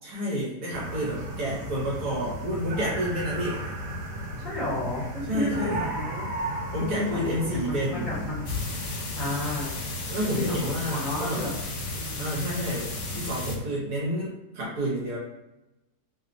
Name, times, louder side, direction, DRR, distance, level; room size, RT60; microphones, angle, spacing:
voice 1, 0.0-3.7 5.3-5.8 6.7-8.1 10.1-11.5 12.2-15.2, equal, 70° right, -6 dB, 1.2 m, -30 dB
sound 1, 0.7-13.6, equal, 90° right, 1.3 m, -35 dB
voice 2, 4.4-6.3 6.8-8.5 8.8-9.8 10.3-11.5 11.9-12.5, left 1 dB, 35° left, -8 dB, 0.9 m, -32 dB
sound 2, 8.5-13.6, left 3 dB, 70° left, 0.7 m, -37 dB
3.0 x 2.0 x 2.5 m, 0.95 s
omnidirectional pair, 1.8 m